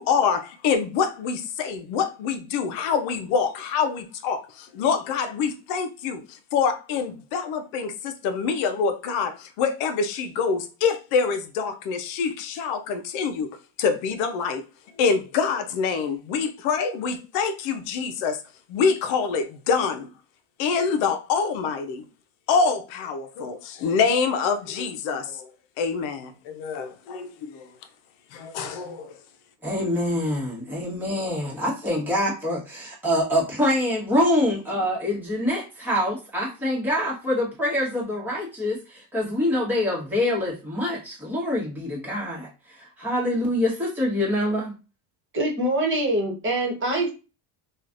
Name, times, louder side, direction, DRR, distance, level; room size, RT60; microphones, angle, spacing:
voice 1, 0.0-13.5 13.8-14.6 15.0-18.4 18.7-20.1 20.6-22.0 22.5-25.5 25.8-27.7 28.3-29.2, left 5 dB, 70° left, 0.7 m, -25 dB
voice 2, 29.6-44.7, left 1 dB, 5° right, 1.2 m, -25 dB
voice 3, 45.3-47.1, right 1 dB, 25° right, 1.2 m, -24 dB
3.1 x 2.4 x 2.5 m
supercardioid pair, 110°, 50 cm